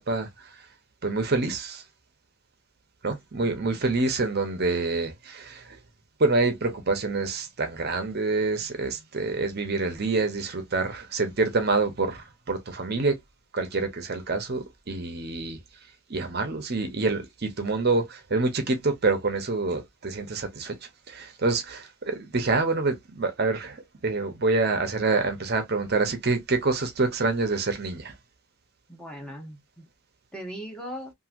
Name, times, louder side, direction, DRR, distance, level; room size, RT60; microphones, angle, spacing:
voice 1, 1.0-1.8 3.0-5.8 6.2-13.1 13.5-15.6 16.1-20.8 21.1-28.1, right 3 dB, 45° right, 0.7 m, -26 dB
voice 2, 3.4-3.8 28.9-29.8 30.3-31.1, equal, 5° left, 1.0 m, -39 dB
2.9 x 2.7 x 2.5 m
head